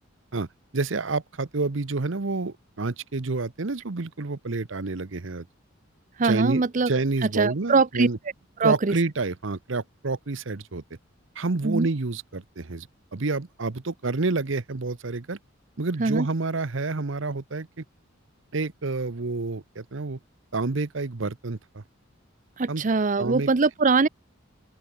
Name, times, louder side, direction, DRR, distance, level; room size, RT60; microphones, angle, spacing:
voice 1, 0.7-5.5 6.2-8.2 8.6-10.8 11.4-15.4 15.8-17.8 18.5-20.2 20.5-21.8 22.7-22.8 23.2-23.5, right 3 dB, 65° right, 0.9 m, -28 dB
voice 2, 6.2-6.9 7.3-8.1 8.6-9.0 11.6-11.9 16.0-16.3 22.6-24.1, right 4 dB, 40° right, 0.6 m, -22 dB
open air
head